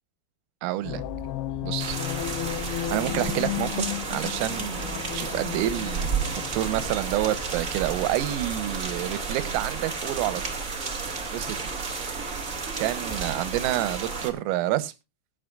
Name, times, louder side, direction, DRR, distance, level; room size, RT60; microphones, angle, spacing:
voice 1, 0.6-1.0 1.6-2.0 2.9-10.4 11.3-11.7 12.8-14.9, right 14 dB, 85° right, 3.8 m, -28 dB
sound 1, 0.8-7.0, left 13 dB, 80° left, 2.3 m, -33 dB
sound 2, 1.8-14.3, right 4 dB, 65° right, 0.8 m, -32 dB
21.0 x 8.5 x 2.5 m
omnidirectional pair, 5.8 m